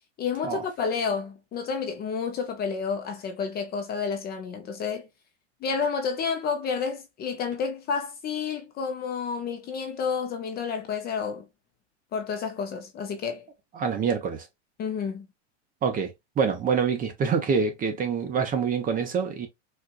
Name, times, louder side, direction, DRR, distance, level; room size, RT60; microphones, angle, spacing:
voice 1, 0.2-5.1 5.6-11.4 12.1-13.5 14.8-15.3, left 6 dB, 25° left, 0.6 m, -30 dB
voice 2, 13.8-14.5 15.8-19.5, right 6 dB, 25° right, 0.8 m, -26 dB
4.4 x 2.4 x 2.3 m
supercardioid pair, 130°, 37 cm